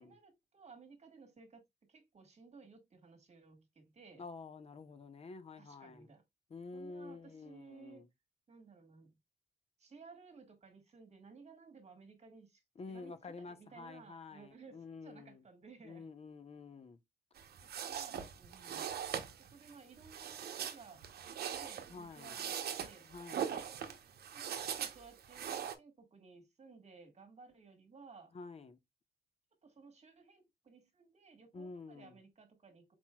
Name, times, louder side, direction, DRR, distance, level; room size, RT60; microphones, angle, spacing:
voice 1, 0.0-1.6 1.9-4.2 5.6-6.2 6.7-8.0 8.5-9.2 9.8-12.6 12.9-16.1 17.6-18.8 19.4-23.1 23.8-24.0 24.3-28.3 29.6-32.9, right 4 dB, 40° right, 1.5 m, -58 dB
voice 2, 4.2-6.1 6.5-8.1 12.8-15.4 15.8-17.0 21.9-22.4 23.1-23.6 28.3-28.8 31.5-32.2, left 4 dB, 35° left, 0.6 m, -49 dB
sound 1, 17.4-25.8, right 8 dB, 65° right, 0.8 m, -41 dB
4.3 x 4.3 x 2.2 m
cardioid pair, 95°, 17 cm